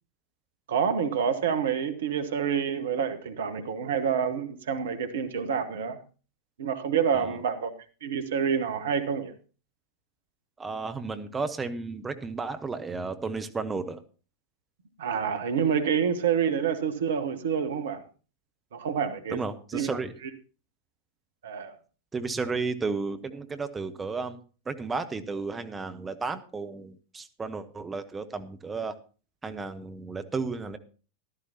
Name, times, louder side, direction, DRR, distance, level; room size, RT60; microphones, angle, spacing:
voice 1, 0.7-6.0 6.6-7.7 8.0-9.3 15.0-18.0 18.7-19.4 19.7-19.9 21.4-21.8, right 7 dB, 60° right, 1.3 m, -27 dB
voice 2, 10.6-14.0 19.3-20.1 22.1-24.4 24.7-29.0 29.4-30.8, right 4 dB, 15° right, 1.0 m, -33 dB
14.5 x 13.0 x 2.9 m
figure-of-eight pair, 90°, 0 cm